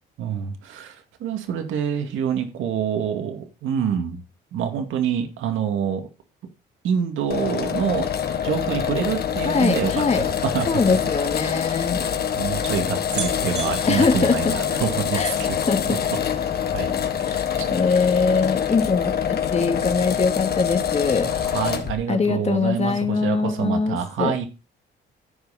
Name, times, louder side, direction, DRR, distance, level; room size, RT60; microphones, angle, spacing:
voice 1, 0.2-4.2 4.5-6.1 6.8-8.2 8.4-10.8 11.7-15.6 15.9-16.0 16.7-16.9 17.6-17.7 21.2-24.5, right 8 dB, 80° right, 2.2 m, -26 dB
sound 1, 7.2-10.8 11.6-11.7 11.9-12.0 12.6-12.7 13.1-15.0 15.4-15.9 16.1-16.2, right 7 dB, 55° right, 6.6 m, -39 dB
sound 2, 7.3-22.0, left 8 dB, 55° left, 1.5 m, -25 dB
voice 2, 9.4-10.2 10.6-12.0 13.9-14.5 15.1-15.3 15.7-16.0 17.2-17.4 17.7-21.3 22.1-24.3, left 4 dB, 35° left, 2.0 m, -22 dB
14.0 x 5.7 x 4.1 m
cardioid pair, 90°, 20 cm